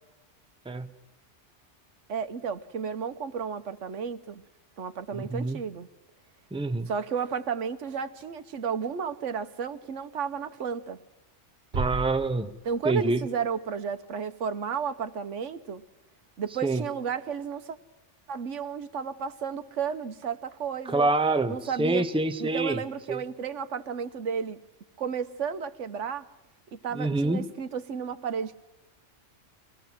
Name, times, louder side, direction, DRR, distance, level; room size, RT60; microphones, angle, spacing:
voice 1, 2.1-4.4 4.8-5.9 6.9-11.0 12.6-15.8 16.4-17.8 18.3-21.1 21.5-22.0 22.4-24.6 25.0-26.2 26.7-28.6, right 6 dB, 80° right, 11 dB, 1.3 m, -32 dB
voice 2, 5.1-5.6 6.5-6.9 11.7-12.5 12.8-13.2 16.6-16.8 20.9-22.8 23.1-23.2 26.9-27.4, right 2 dB, 5° right, 9 dB, 0.8 m, -26 dB
sound 1, 11.7-13.7, right 3 dB, 45° right, 1.3 m, -36 dB
23.5 x 18.0 x 7.5 m, 1.0 s
omnidirectional pair, 1.2 m